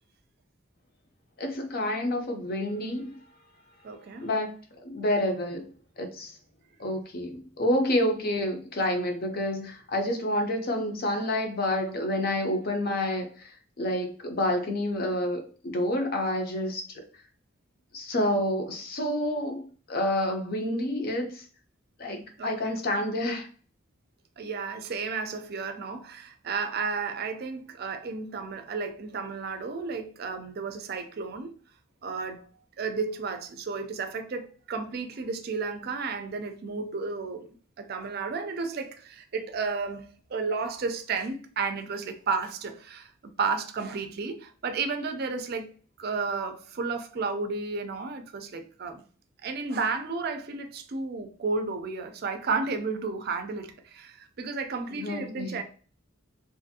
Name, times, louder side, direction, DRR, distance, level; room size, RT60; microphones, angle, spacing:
voice 1, 1.4-3.2 4.2-5.7 6.0-6.3 6.8-16.8 17.9-19.6 19.9-21.5 22.0-23.5 54.9-55.6, left 1 dB, 50° left, 0.6 m, -29 dB
voice 2, 3.8-4.3 22.4-22.8 24.4-31.5 32.0-32.5 32.8-37.5 37.8-43.1 43.4-45.7 46.0-49.0 49.4-55.6, right 4 dB, 50° right, 0.4 m, -32 dB
2.6 x 2.5 x 2.6 m
head